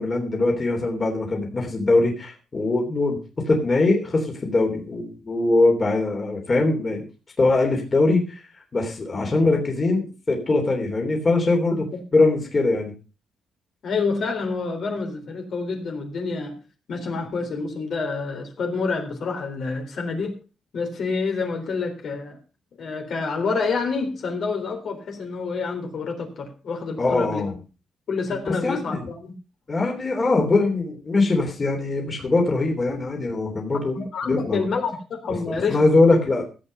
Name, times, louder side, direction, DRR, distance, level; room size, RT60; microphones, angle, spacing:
voice 1, 0.0-7.0 7.4-11.8 12.1-12.9 27.0-27.5 28.6-29.1 29.7-33.9 34.2-34.6 35.5-36.5, left 2 dB, 25° left, 1 dB, 3.3 m, -22 dB
voice 2, 13.8-16.5 16.9-20.3 20.7-22.4 22.8-27.4 28.1-29.3 33.9-36.0, left 4 dB, 50° left, 4 dB, 3.9 m, -28 dB
16.0 x 8.5 x 5.5 m, 0.34 s
cardioid pair, 155°, 0 cm